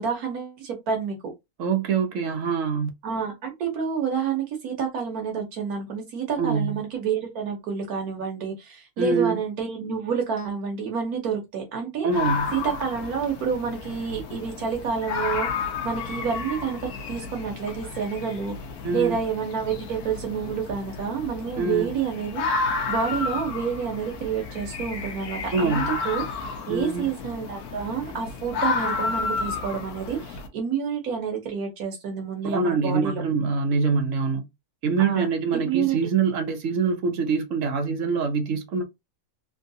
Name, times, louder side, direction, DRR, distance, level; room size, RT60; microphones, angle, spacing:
voice 1, 0.0-1.3 3.0-12.1 12.5-15.5 15.8-18.5 18.9-33.2 35.0-35.3 35.5-36.0, right 6 dB, 80° right, 1.4 m, -29 dB
voice 2, 1.6-2.9 6.4-6.8 9.0-9.4 12.0-12.5 18.8-19.2 21.6-21.9 25.5-26.0 26.7-27.1 32.4-34.4 34.8-38.8, right 5 dB, 60° right, 1.1 m, -24 dB
sound 1, 12.1-30.5, left 4 dB, 85° left, 1.3 m, -32 dB
3.7 x 2.6 x 2.6 m
omnidirectional pair, 1.6 m